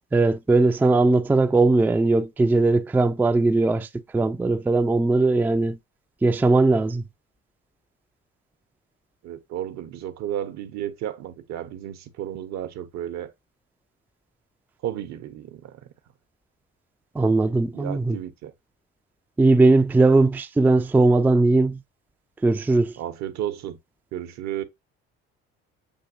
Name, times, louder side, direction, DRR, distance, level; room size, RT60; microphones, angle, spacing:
voice 1, 0.1-3.9 4.1-5.8 6.2-7.0 17.2-18.2 19.4-21.8 22.4-22.9, right 3 dB, 5° right, 0.3 m, -19 dB
voice 2, 9.2-13.3 14.8-15.7 17.7-18.5 23.0-23.8 24.1-24.6, right 11 dB, 65° right, 0.7 m, -33 dB
6.9 x 2.6 x 2.4 m
supercardioid pair, 70°, 30 cm